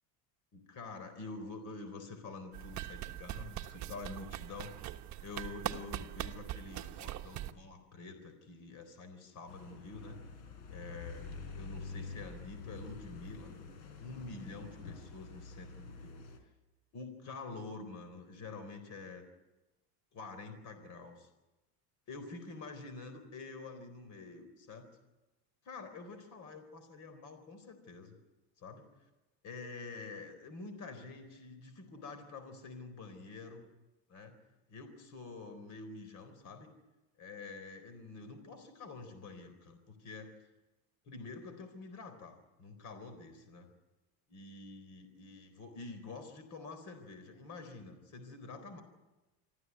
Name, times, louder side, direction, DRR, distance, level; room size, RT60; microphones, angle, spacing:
voice 1, 0.5-4.9 5.2-10.2 10.7-13.5 14.0-16.2 16.9-19.3 20.1-21.3 22.1-24.9 25.6-28.2 28.6-28.9 29.4-33.6 34.1-34.3 34.7-36.7 37.2-40.3 41.1-43.7 44.3-48.8, left 3 dB, 45° left, 9 dB, 4.2 m, -47 dB
sound 1, 2.5-7.5, right 13 dB, 40° right, 1.2 m, -42 dB
sound 2, 9.5-16.4, left 4 dB, 90° left, 4.5 m, -47 dB
26.0 x 14.5 x 9.6 m, 1.1 s
cardioid pair, 140°, 43 cm